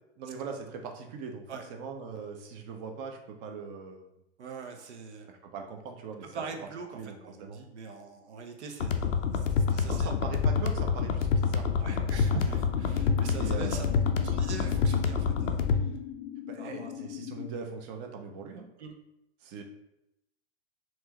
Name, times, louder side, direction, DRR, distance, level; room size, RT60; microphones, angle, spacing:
voice 1, 0.2-4.0 5.3-6.4 6.9-7.6 9.7-12.0 13.3-14.0 16.5-18.7 19.4-19.6, right 5 dB, 35° right, 3 dB, 0.7 m, -41 dB
voice 2, 4.4-5.3 6.2-10.1 11.8-13.8 14.1-15.6 16.6-16.9 18.8-18.9, right 5 dB, 65° right, 4 dB, 0.9 m, -42 dB
sound 1, 8.8-15.8, left 6 dB, 80° left, 0.6 m, -27 dB
sound 2, 12.5-17.5, left 12 dB, 25° left, 0.4 m, -40 dB
4.5 x 3.0 x 2.9 m, 0.86 s
hypercardioid pair, 110°, 37 cm